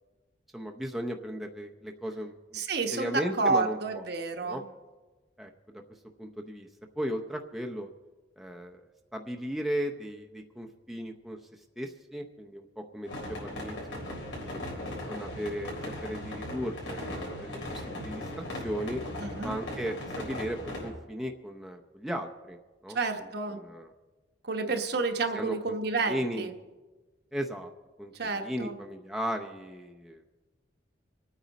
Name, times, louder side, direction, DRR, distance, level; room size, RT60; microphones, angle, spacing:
voice 1, 0.5-2.6 2.9-4.1 4.4-4.6 5.4-5.8 6.2-6.7 7.0-7.9 8.4-8.8 9.1-13.8 14.3-14.6 15.1-15.7 16.0-17.0 17.4-19.0 19.4-22.6 22.8-23.9 25.3-25.6 26.0-26.5 27.3-27.7 28.0-30.2, equal, ahead, 1 dB, 0.6 m, -36 dB
voice 2, 2.5-4.6 19.2-19.5 22.9-23.6 24.4-26.5 28.1-28.8, right 3 dB, 60° right, 5 dB, 1.1 m, -30 dB
sound 1, 13.1-20.9, left 1 dB, 75° left, 4.0 m, -38 dB
26.0 x 9.1 x 4.1 m, 1.3 s
head